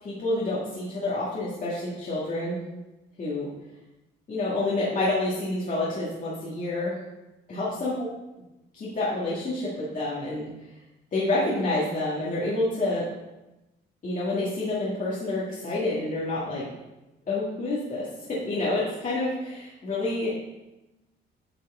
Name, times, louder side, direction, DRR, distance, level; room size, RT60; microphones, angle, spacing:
voice 1, 0.0-2.6 3.2-3.5 4.3-7.0 7.5-8.1 8.7-10.5 11.1-13.1 14.0-16.7 17.3-20.3, left 2 dB, 40° left, -8 dB, 1.8 m, -28 dB
9.1 x 4.5 x 3.6 m, 1.0 s
cardioid pair, 90°, 20 cm